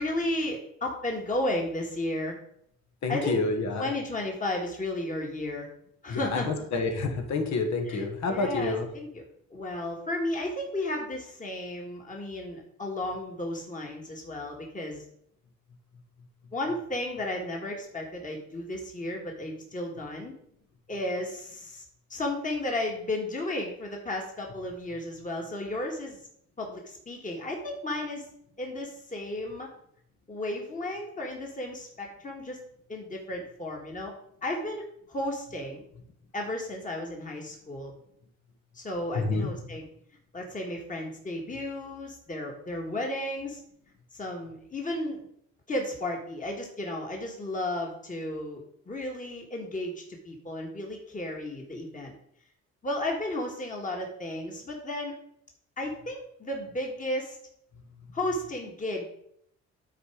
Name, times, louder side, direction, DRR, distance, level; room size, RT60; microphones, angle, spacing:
voice 1, 0.0-2.3 3.1-3.4 3.8-5.7 6.0-6.5 7.9-8.0 8.3-9.2 9.5-15.0 16.5-20.3 20.9-21.8 22.1-26.2 26.6-28.3 28.6-29.7 30.3-32.6 32.9-34.1 34.4-35.8 36.3-37.9 38.7-39.9 40.3-43.6 44.1-45.2 45.7-49.9 50.2-52.1 52.8-55.1 55.8-57.4 58.1-59.1, left 1 dB, 25° left, 1 dB, 1.7 m, -33 dB
voice 2, 3.0-3.9 6.1-8.9 39.1-39.8 58.0-58.1, left 3 dB, 65° left, 5 dB, 1.6 m, -29 dB
9.2 x 4.2 x 4.9 m, 0.70 s
cardioid pair, 90°, 30 cm